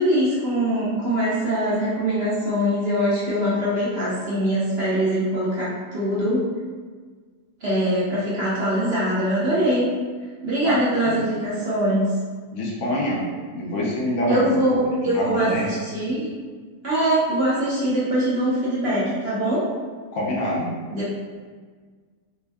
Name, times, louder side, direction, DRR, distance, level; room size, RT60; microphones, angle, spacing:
voice 1, 0.0-6.5 7.6-9.9 10.4-12.1 14.3-16.3 16.8-19.6 20.9-21.2, right 1 dB, 50° right, -9 dB, 0.9 m, -22 dB
voice 2, 12.5-13.2 13.5-14.5 15.1-15.7 20.1-20.7, left 1 dB, 70° left, -4 dB, 1.2 m, -25 dB
3.4 x 2.1 x 3.4 m, 1.5 s
omnidirectional pair, 1.7 m